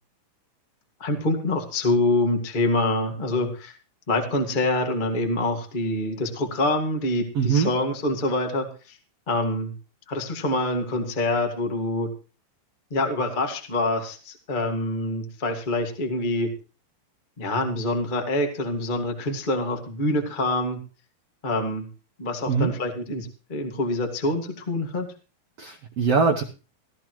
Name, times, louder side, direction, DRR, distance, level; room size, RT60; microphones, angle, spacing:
voice 1, 1.0-3.7 4.1-9.0 9.3-9.7 10.1-12.1 12.9-16.5 17.4-20.8 21.4-21.8 22.2-25.1, left 2 dB, 25° left, 4 dB, 1.0 m, -26 dB
voice 2, 7.3-7.7 22.5-22.7 25.6-26.4, right 5 dB, 90° right, 4 dB, 1.3 m, -22 dB
17.5 x 13.5 x 3.1 m, 0.34 s
omnidirectional pair, 4.4 m